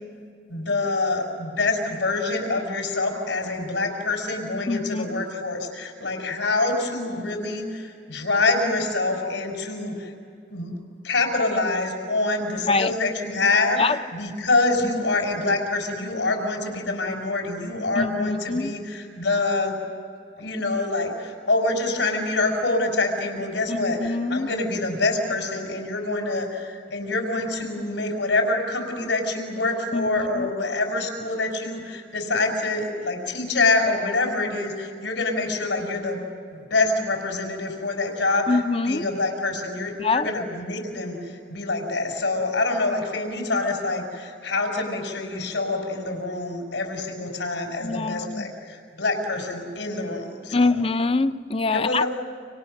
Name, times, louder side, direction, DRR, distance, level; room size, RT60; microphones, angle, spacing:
voice 1, 0.5-10.1 10.5-10.7 11.0-19.8 20.4-36.2 36.5-50.7 51.7-52.1, left 2 dB, 90° left, 5.2 m, -26 dB
voice 2, 4.7-5.2 12.7-12.9 13.8-14.0 18.0-18.7 23.7-24.5 29.9-30.1 30.3-30.5 38.5-39.0 40.0-40.3 47.8-48.5 50.5-52.0, left 3 dB, 30° left, 0.6 m, -24 dB
29.5 x 26.5 x 6.5 m
head